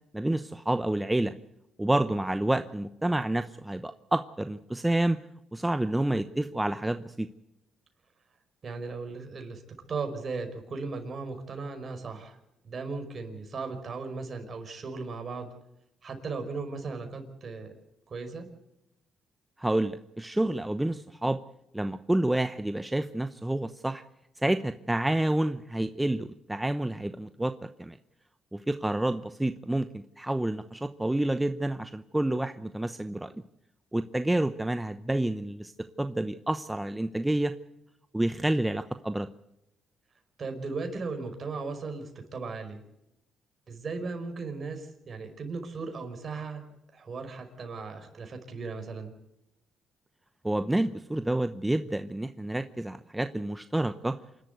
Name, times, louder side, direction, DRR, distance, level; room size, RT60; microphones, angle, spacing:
voice 1, 0.1-1.3 1.8-5.2 5.5-7.3 19.6-21.4 21.7-24.0 24.4-27.5 27.8-28.0 28.5-33.3 33.9-35.7 36.0-37.5 38.1-39.3 50.4-54.1, right 1 dB, 10° right, 10 dB, 0.8 m, -29 dB
voice 2, 8.6-9.6 9.9-12.4 12.6-15.5 16.0-17.7 18.1-18.5 40.4-42.8 43.7-46.6 46.9-49.1, right 4 dB, 45° right, 5 dB, 5.2 m, -37 dB
27.0 x 12.0 x 8.3 m, 0.87 s
cardioid pair, 90°, 0 cm